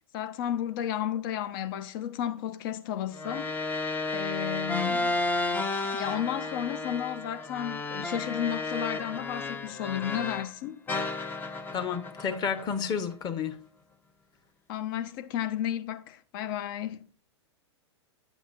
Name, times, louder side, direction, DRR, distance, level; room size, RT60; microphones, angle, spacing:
voice 1, 0.1-3.5 4.1-5.2 5.9-10.8 14.7-17.0, left 10 dB, 50° left, 0.8 m, -33 dB
sound 1, 3.1-10.5 10.9-13.3, left 2 dB, 10° left, 0.6 m, -33 dB
voice 2, 11.7-13.6, left 7 dB, 30° left, 1.0 m, -31 dB
9.5 x 7.1 x 2.6 m
hypercardioid pair, 115°, 15 cm